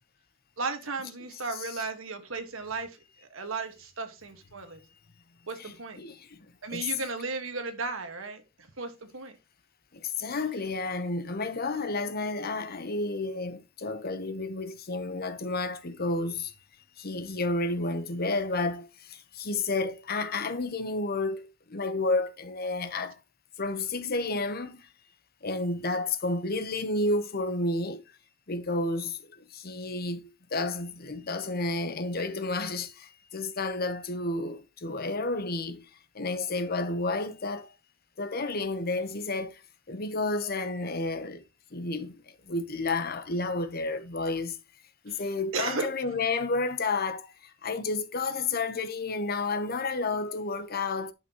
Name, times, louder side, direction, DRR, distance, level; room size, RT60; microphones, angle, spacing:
voice 1, 0.6-4.8 5.5-6.0 6.6-9.4 45.1-45.2 45.5-46.2, right 3 dB, 80° right, 1.7 m, -35 dB
voice 2, 1.5-1.9 5.6-6.2 6.7-6.9 9.9-16.5 17.0-18.9 19.3-23.1 23.6-24.8 25.4-28.0 28.5-29.2 29.5-35.8 36.1-37.7 38.2-39.6 39.9-41.4 41.7-42.1 42.5-44.6 45.0-47.3 47.6-51.1, left 3 dB, 50° left, 1.0 m, -31 dB
11.0 x 6.0 x 3.0 m
head